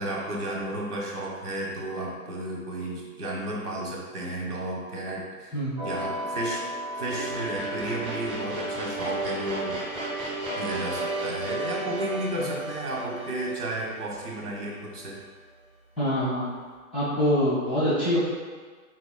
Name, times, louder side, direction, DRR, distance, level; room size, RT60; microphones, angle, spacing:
voice 1, 0.0-5.5 5.8-6.6 7.0-9.8 10.6-15.2, right 1 dB, 85° right, -3 dB, 1.5 m, -33 dB
sound 1, 5.8-15.0, right 1 dB, 15° right, 1.3 m, -33 dB
voice 2, 16.0-16.5 16.9-18.2, equal, 10° left, -18 dB, 0.4 m, -24 dB
4.4 x 4.1 x 2.2 m, 1.5 s
hypercardioid pair, 145°, 45 cm